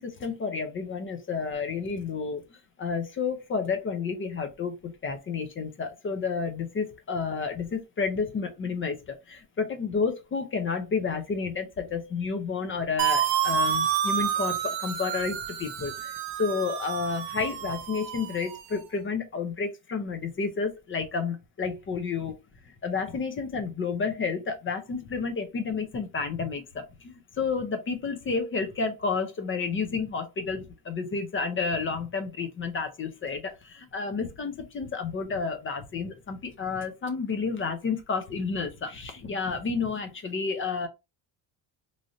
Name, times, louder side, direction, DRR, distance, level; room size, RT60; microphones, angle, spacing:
voice 1, 0.0-2.4 2.8-22.3 22.8-40.9, left 5 dB, 30° left, 0.5 m, -31 dB
sound 1, 13.0-18.8, right 8 dB, 75° right, 0.8 m, -29 dB
3.1 x 2.5 x 2.6 m
cardioid pair, 110°, 43 cm